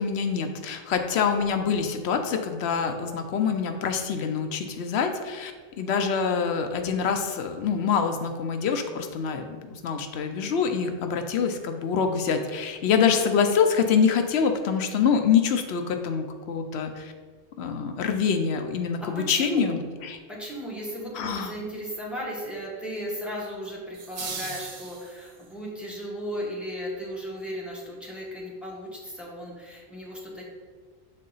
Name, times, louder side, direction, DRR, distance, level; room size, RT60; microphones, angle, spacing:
voice 1, 0.0-5.5 5.8-17.1 17.6-20.2 21.1-21.5, left 6 dB, 85° left, 6 dB, 0.9 m, -25 dB
voice 2, 5.7-6.3 19.0-19.7 20.3-30.4, equal, ahead, -4 dB, 1.1 m, -36 dB
sound 1, 23.9-25.5, right 4 dB, 60° right, 0.9 m, -37 dB
7.4 x 3.7 x 4.0 m, 1.5 s
omnidirectional pair, 1.1 m